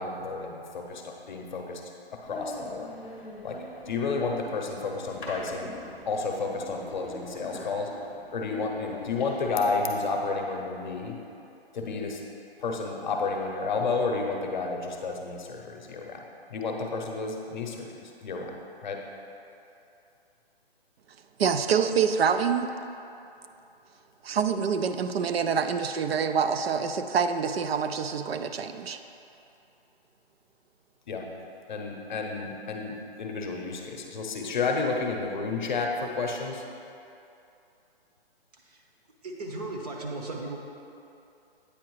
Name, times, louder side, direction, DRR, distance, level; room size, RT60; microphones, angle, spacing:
voice 1, 0.0-1.8 2.1-3.0 3.4-5.7 6.1-8.1 8.3-11.2 11.7-12.2 12.6-19.1 31.1-31.4 31.7-36.7, left 4 dB, 50° left, 1 dB, 0.7 m, -31 dB
sound 1, 2.2-9.8, left 1 dB, ahead, 0.4 m, -43 dB
voice 2, 21.4-22.7 24.2-29.0, right 6 dB, 75° right, 8 dB, 0.5 m, -26 dB
voice 3, 38.5-38.9 39.2-40.6, right 2 dB, 40° right, 0 dB, 0.8 m, -36 dB
8.6 x 4.8 x 3.1 m, 2.8 s
hypercardioid pair, 160°, 31 cm